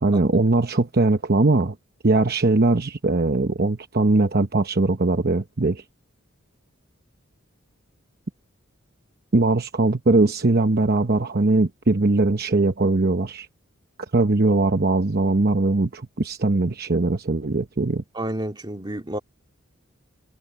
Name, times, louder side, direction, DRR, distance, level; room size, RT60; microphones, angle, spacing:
voice 1, 0.0-1.7 2.0-5.8 9.3-13.5 14.1-18.0, right 2 dB, 50° right, 0.9 m, -20 dB
voice 2, 18.1-19.2, right 1 dB, 20° right, 2.6 m, -30 dB
head